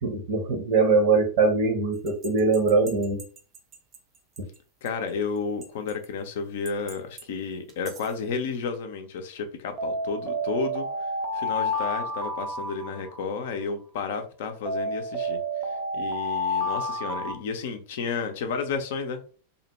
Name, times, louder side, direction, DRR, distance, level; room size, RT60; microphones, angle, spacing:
voice 1, 0.0-3.2, right 3 dB, 50° right, 0.8 m, -22 dB
sound 1, 2.1-4.0 4.4-4.5 4.9-5.0 5.6-6.0 6.7-7.2 7.7-8.1 9.8-13.5 14.7-17.3, equal, 30° right, 0.5 m, -30 dB
voice 2, 4.8-10.9 11.3-15.4 15.7-19.2, left 5 dB, 55° left, 0.4 m, -32 dB
2.4 x 2.1 x 3.0 m
figure-of-eight pair, 90°, 0 cm